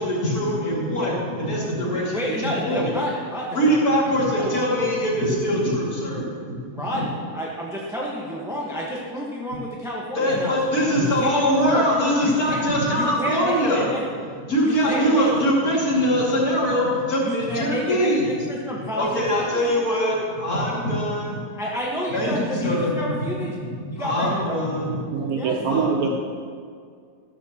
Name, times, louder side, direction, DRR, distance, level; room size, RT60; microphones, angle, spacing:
voice 1, 0.0-2.9 3.5-6.3 6.9-7.0 10.1-13.9 14.5-18.3 19.0-21.4 22.1-23.5 24.0-25.0 25.7-26.1, equal, 70° left, -5 dB, 2.9 m, -22 dB
voice 2, 1.9-3.6 6.7-7.0 7.3-10.6 11.0-11.8 12.2-12.6 12.9-14.0 14.6-15.3 17.2-18.2 18.5-19.6 21.6-23.6 23.9-24.6 25.3-25.5, equal, ahead, -4 dB, 1.1 m, -30 dB
voice 3, 25.1-26.1, right 6 dB, 70° right, 2 dB, 1.2 m, -23 dB
14.0 x 13.0 x 3.0 m, 2.1 s
omnidirectional pair, 1.7 m